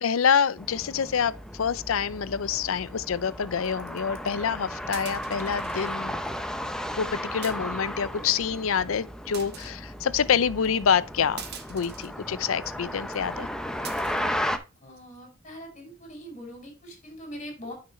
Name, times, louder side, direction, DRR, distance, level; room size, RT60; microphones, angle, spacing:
voice 1, 0.0-6.1 7.0-11.4 11.7-13.5, left 7 dB, 90° left, 0.5 m, -26 dB
sound 1, 0.6-14.6, equal, 5° left, 0.7 m, -35 dB
sound 2, 2.8-3.0 3.6-4.4 4.9-5.9 6.2-6.4 6.7-6.8 7.4-7.9 8.5-8.6 9.3-9.8 10.6-10.8 11.4-12.1 12.6-12.7 13.1-13.3 13.8-14.2 14.8-15.2, right 8 dB, 55° right, 1.2 m, -44 dB
voice 2, 14.8-17.7, equal, 35° left, 5.1 m, -42 dB
9.5 x 5.9 x 3.1 m
head